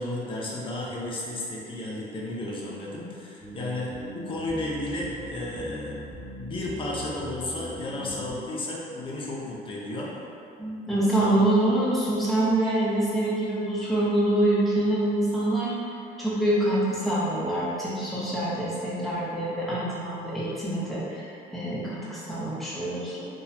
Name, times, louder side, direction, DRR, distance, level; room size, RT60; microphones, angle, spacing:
voice 1, 0.0-6.1 6.4-10.1 11.2-11.4, left 1 dB, 30° left, -4 dB, 0.7 m, -33 dB
sound 1, 3.4-8.5, equal, 30° right, 1.1 m, -41 dB
voice 2, 10.6-15.7 16.2-23.3, right 1 dB, ahead, -10 dB, 1.0 m, -25 dB
3.9 x 2.3 x 2.8 m, 2.5 s
cardioid pair, 110°, 17 cm